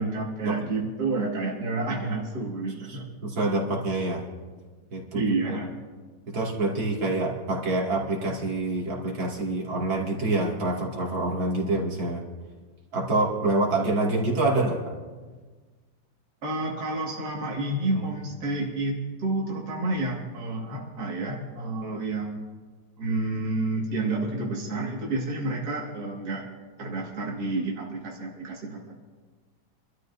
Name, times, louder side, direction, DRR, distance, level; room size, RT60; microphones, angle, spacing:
voice 1, 0.0-3.0 5.1-5.8 16.4-22.4 23.0-26.5 26.8-29.0, right 2 dB, 55° right, -2 dB, 2.5 m, -29 dB
voice 2, 2.9-4.2 4.9-5.3 6.3-12.2 12.9-14.9 21.8-22.0, right 2 dB, 85° right, -3 dB, 3.2 m, -26 dB
27.5 x 13.0 x 2.7 m, 1.4 s
omnidirectional pair, 2.1 m